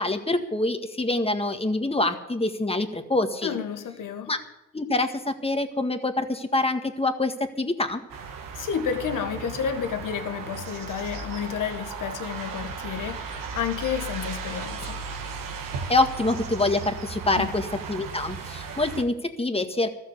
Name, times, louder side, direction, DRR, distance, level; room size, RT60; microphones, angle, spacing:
voice 1, 0.0-3.6 4.3-4.4 4.7-8.0 15.9-19.9, left 2 dB, 15° left, 1.8 m, -26 dB
voice 2, 3.4-4.3 8.5-15.0 17.4-17.5, left 7 dB, 65° left, 1.7 m, -31 dB
sound 1, 8.1-19.0, right 5 dB, 75° right, 1.5 m, -36 dB
13.5 x 7.5 x 10.0 m
supercardioid pair, 55°, 34 cm